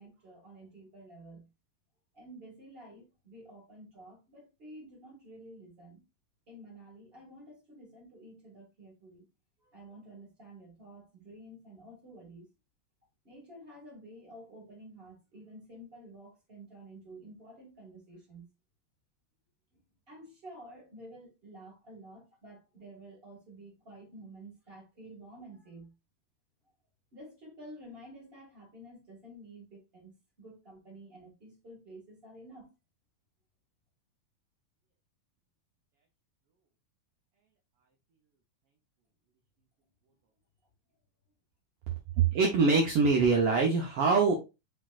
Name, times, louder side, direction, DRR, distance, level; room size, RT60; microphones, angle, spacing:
voice 1, 0.0-1.5 2.1-6.0 6.5-9.2 9.6-12.5 13.2-18.5 20.1-25.9 27.1-30.1 30.4-32.7, right 1 dB, 25° right, 1.6 m, -51 dB
voice 2, 42.3-44.3, right 4 dB, 75° right, 1.3 m, -24 dB
4.6 x 4.3 x 2.4 m
omnidirectional pair, 3.6 m